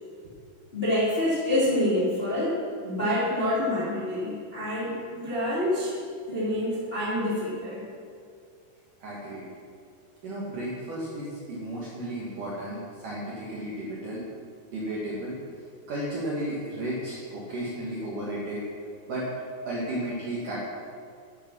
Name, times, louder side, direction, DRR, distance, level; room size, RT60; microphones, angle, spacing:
voice 1, 0.7-2.6 2.8-6.0 6.3-7.8, left 1 dB, 25° left, -9 dB, 1.2 m, -27 dB
voice 2, 9.0-9.5 10.2-14.2 14.7-15.3 15.9-18.6 19.1-19.3 19.6-20.6, right 1 dB, 60° right, -7 dB, 2.3 m, -33 dB
11.5 x 6.8 x 6.1 m, 2.2 s
omnidirectional pair, 5.9 m